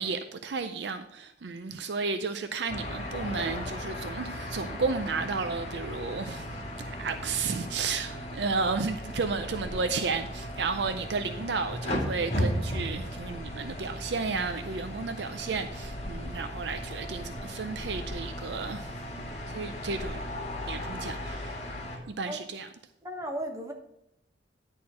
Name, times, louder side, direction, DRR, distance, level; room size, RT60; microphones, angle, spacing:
voice 1, 0.0-18.9 19.2-20.2 20.7-21.6 22.1-22.7, right 4 dB, 65° right, 0.5 m, -33 dB
sound 1, 2.7-22.0, equal, 35° left, 1.9 m, -36 dB
voice 2, 23.0-23.7, right 1 dB, 20° right, 1.2 m, -35 dB
10.5 x 4.4 x 6.2 m
head